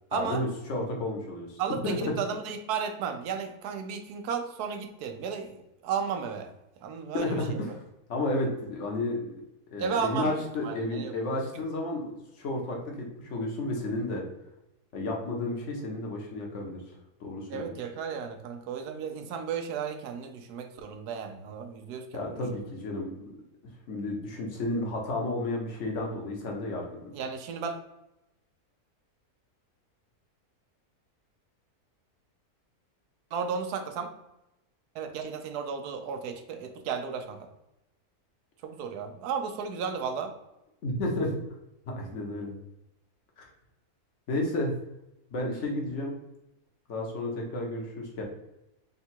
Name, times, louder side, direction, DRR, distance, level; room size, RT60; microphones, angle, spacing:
voice 1, 0.1-2.0 7.1-7.8 8.1-9.3 9.7-14.2 14.9-16.8 17.2-17.7 22.1-23.4 23.9-27.1 40.8-41.3 41.9-42.5 43.4-43.5 44.3-44.7 45.3-46.1 46.9-48.2, left 1 dB, 55° left, 0 dB, 1.1 m, -32 dB
voice 2, 1.6-6.5 6.8-7.6 9.8-10.3 10.6-11.1 17.5-22.4 27.1-27.7 33.3-34.1 34.9-37.4 38.6-40.3, right 6 dB, 85° right, 6 dB, 1.1 m, -34 dB
3.8 x 2.3 x 4.3 m, 0.89 s
omnidirectional pair, 1.6 m